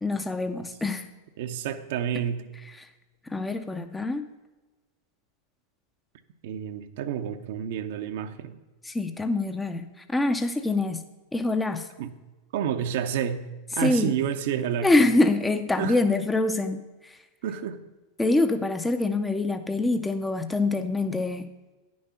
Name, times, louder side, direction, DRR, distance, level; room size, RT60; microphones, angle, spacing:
voice 1, 0.0-1.0 2.8-2.9 3.3-4.2 8.8-11.0 11.3-11.9 13.8-14.1 14.8-17.2 18.2-21.5, left 2 dB, 10° left, 8 dB, 0.6 m, -25 dB
voice 2, 1.4-2.5 6.4-8.6 12.0-12.1 12.5-13.4 13.8-14.9 15.8-16.0 17.4-17.8, right 9 dB, 65° right, 9 dB, 0.8 m, -29 dB
9.7 x 6.4 x 5.6 m, 1.2 s
hypercardioid pair, 100°, 0 cm